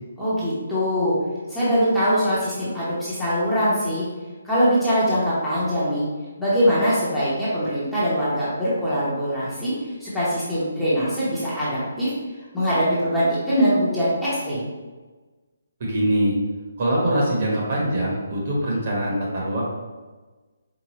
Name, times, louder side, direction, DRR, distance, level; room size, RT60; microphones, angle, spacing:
voice 1, 0.2-1.2 1.5-4.0 4.4-6.0 6.4-9.7 10.0-12.1 12.5-14.6, equal, ahead, -13 dB, 0.9 m, -22 dB
voice 2, 15.8-16.3 16.8-19.6, right 1 dB, 40° right, -4 dB, 1.1 m, -23 dB
4.8 x 2.3 x 3.0 m, 1.3 s
hypercardioid pair, 165°, 0 cm